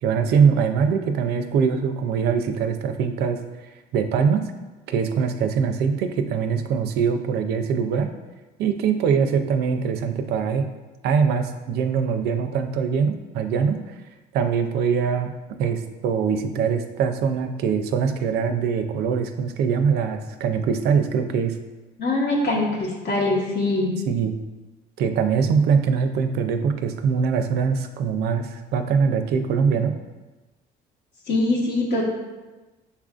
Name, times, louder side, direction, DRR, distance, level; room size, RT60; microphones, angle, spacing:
voice 1, 0.0-3.4 3.9-4.5 4.9-8.1 8.6-10.7 11.0-13.9 14.3-15.3 15.6-21.6 24.1-24.3 25.0-29.9, right 6 dB, 75° right, 8 dB, 0.4 m, -22 dB
voice 2, 22.0-24.0 31.3-32.1, left 2 dB, 70° left, -4 dB, 1.0 m, -23 dB
6.7 x 2.5 x 2.4 m, 1.2 s
cardioid pair, 110°, 17 cm